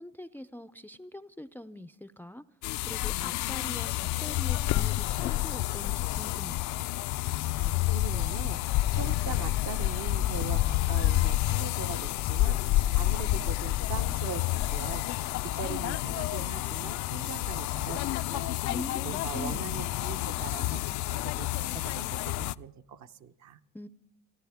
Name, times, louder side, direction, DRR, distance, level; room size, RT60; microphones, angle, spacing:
voice 1, 0.0-2.4 2.9-3.9 4.2-6.6 18.7-19.9 23.7-23.9, left 1 dB, 5° left, 12 dB, 0.4 m, -43 dB
sound 1, 2.6-22.5, left 16 dB, 65° left, 0.4 m, -29 dB
voice 2, 7.6-18.6 19.0-23.6, right 8 dB, 60° right, 8 dB, 1.0 m, -41 dB
29.5 x 10.0 x 3.5 m, 0.83 s
cardioid pair, 105°, 31 cm